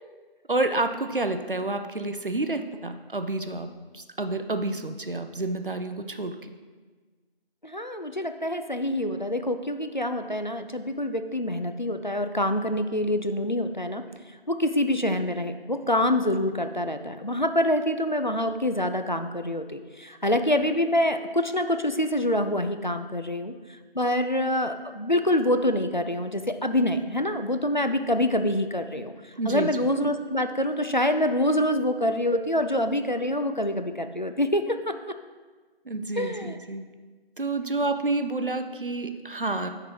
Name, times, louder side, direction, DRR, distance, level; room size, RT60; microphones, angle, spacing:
voice 1, 0.5-3.7 3.9-6.3 29.4-29.7 35.9-36.8 37.4-39.7, right 2 dB, 60° right, 8 dB, 0.6 m, -29 dB
voice 2, 7.6-14.1 14.5-23.5 23.9-29.1 29.5-34.9 36.2-36.6, left 1 dB, 50° left, 8 dB, 0.4 m, -26 dB
9.6 x 3.9 x 4.7 m, 1.4 s
figure-of-eight pair, 175°, 30 cm